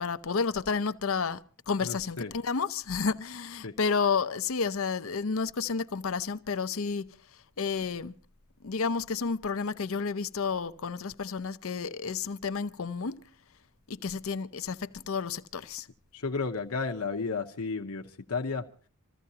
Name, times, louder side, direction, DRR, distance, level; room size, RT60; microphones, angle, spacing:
voice 1, 0.0-7.1 7.6-8.1 8.6-13.3 13.9-15.9, left 5 dB, 70° left, 0.7 m, -31 dB
voice 2, 1.8-2.3 3.6-3.8 16.1-18.7, left 4 dB, 90° left, 0.9 m, -33 dB
27.0 x 14.5 x 2.8 m
head